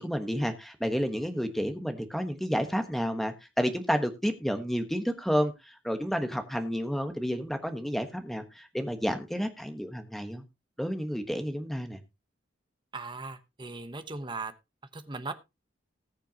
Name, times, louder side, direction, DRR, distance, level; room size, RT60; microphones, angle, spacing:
voice 1, 0.0-10.4 10.8-12.0, equal, ahead, 7 dB, 1.2 m, -30 dB
voice 2, 12.9-14.5 14.9-15.3, right 3 dB, 25° right, 10 dB, 1.0 m, -38 dB
19.5 x 6.8 x 2.9 m, 0.24 s
head